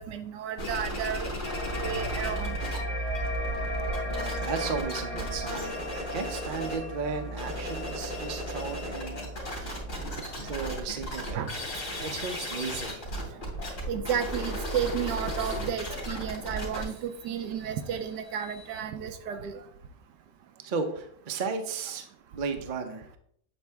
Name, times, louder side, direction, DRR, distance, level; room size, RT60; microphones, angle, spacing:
voice 1, 0.0-1.3 1.8-2.6 11.3-11.5 13.9-19.6, right 8 dB, 75° right, 8 dB, 1.2 m, -32 dB
sound 1, 0.6-2.8 3.0-6.9 7.2-18.8, equal, 40° left, 3.2 m, -36 dB
sound 2, 1.4-10.5, equal, 20° left, 1.4 m, -35 dB
voice 2, 4.1-9.8 10.4-11.6 12.0-13.1 20.6-23.2, right 5 dB, 55° right, 6 dB, 0.5 m, -35 dB
8.4 x 4.3 x 3.5 m, 0.66 s
omnidirectional pair, 2.0 m